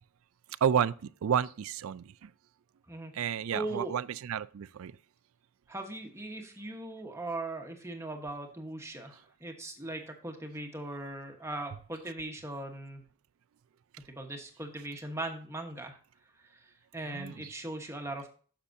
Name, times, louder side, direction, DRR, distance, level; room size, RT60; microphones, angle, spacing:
voice 1, 0.6-2.3 3.1-4.9 17.1-17.5, right 8 dB, 65° right, 0.3 m, -31 dB
voice 2, 2.9-4.0 5.7-13.0 14.1-16.0 16.3-18.3, right 2 dB, 10° right, 1.2 m, -39 dB
9.8 x 6.8 x 2.7 m
head